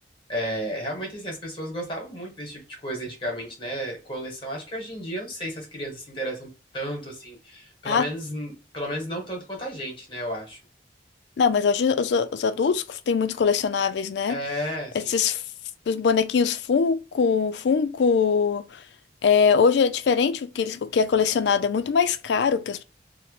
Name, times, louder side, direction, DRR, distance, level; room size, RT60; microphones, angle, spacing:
voice 1, 0.3-10.6 14.3-15.1, equal, 30° left, 1.1 m, -33 dB
voice 2, 11.4-14.4 14.9-15.4 15.9-18.6 19.2-22.8, left 6 dB, 70° left, 0.3 m, -22 dB
2.9 x 2.0 x 3.1 m
head